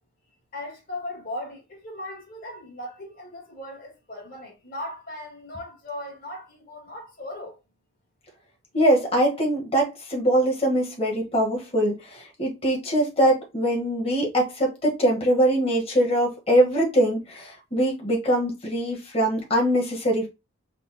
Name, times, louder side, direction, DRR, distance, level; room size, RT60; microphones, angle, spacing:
voice 1, 0.5-7.6, left 1 dB, 45° left, 2.1 m, -38 dB
voice 2, 8.7-20.3, right 1 dB, 30° left, 1.6 m, -22 dB
5.4 x 2.4 x 4.2 m
head